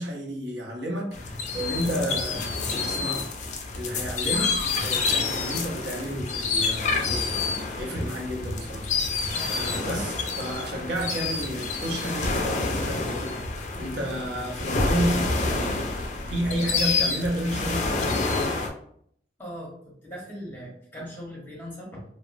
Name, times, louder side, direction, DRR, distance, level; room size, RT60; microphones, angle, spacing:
voice 1, 0.0-3.3 3.7-7.3 7.7-8.9 9.5-13.4 13.8-18.2, equal, 75° right, 0.7 m, -31 dB
sound 1, 1.1-18.7, left 3 dB, 40° left, 0.3 m, -28 dB
voice 2, 9.3-10.0 19.4-22.0, equal, 10° left, 0.9 m, -40 dB
2.8 x 2.1 x 2.5 m
head